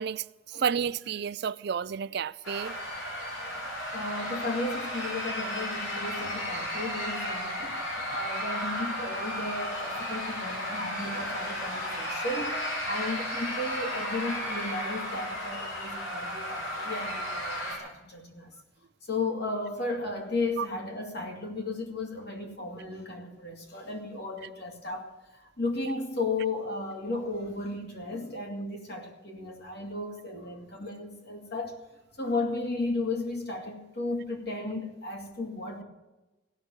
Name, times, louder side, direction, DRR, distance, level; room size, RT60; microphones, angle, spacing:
voice 1, 0.0-2.8 20.6-20.7, right 7 dB, 55° right, 0.4 m, -31 dB
sound 1, 2.4-17.8, equal, 85° left, 4.9 m, -34 dB
voice 2, 3.2-3.7 3.9-18.5 19.0-31.8 32.2-35.8, left 2 dB, 55° left, 2.5 m, -34 dB
16.0 x 6.3 x 9.7 m
head